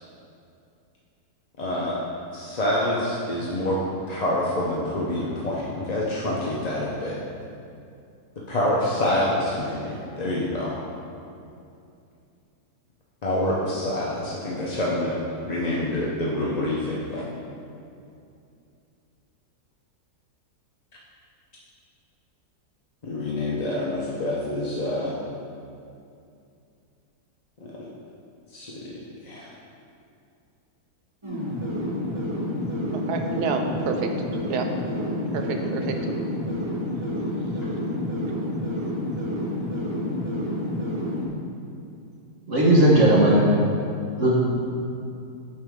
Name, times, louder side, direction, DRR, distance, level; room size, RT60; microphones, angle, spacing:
voice 1, 1.6-2.0 2.3-3.8 4.1-7.2 8.5-10.7 13.2-17.2 23.0-25.2 27.8-27.9 28.5-28.7 29.2-29.5, left 1 dB, 40° left, -5 dB, 0.6 m, -26 dB
sound 1, 31.2-41.3, left 1 dB, 20° right, 0.9 m, -29 dB
voice 2, 32.9-34.7 35.3-36.0, right 5 dB, 85° right, 4 dB, 1.2 m, -29 dB
voice 3, 42.5-43.4 44.2-44.4, right 1 dB, 50° right, -5 dB, 1.5 m, -16 dB
9.4 x 5.8 x 3.6 m, 2.5 s
omnidirectional pair, 1.7 m